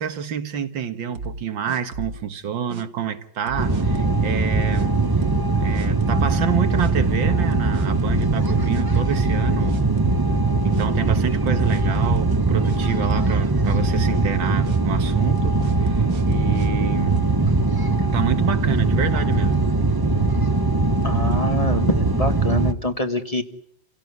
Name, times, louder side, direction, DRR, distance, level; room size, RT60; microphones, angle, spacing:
voice 1, 0.0-5.0 5.5-9.8 10.6-17.3 18.1-19.6, right 8 dB, 90° right, 2.2 m, -28 dB
sound 1, 1.1-2.3 2.7-2.8 3.5-4.2 4.7-4.9 5.2-5.5 5.7-6.3 6.8-6.9 7.5-9.4 9.7-10.4 10.7-10.9 11.5-12.8 13.1-13.4 13.6-14.2 14.6-14.8 15.4-16.7, right 3 dB, 50° right, 1.7 m, -34 dB
sound 2, 3.6-22.7, right 3 dB, 15° right, 0.8 m, -21 dB
voice 2, 21.0-23.4, left 2 dB, 20° left, 1.4 m, -25 dB
29.5 x 17.5 x 9.6 m
omnidirectional pair, 2.0 m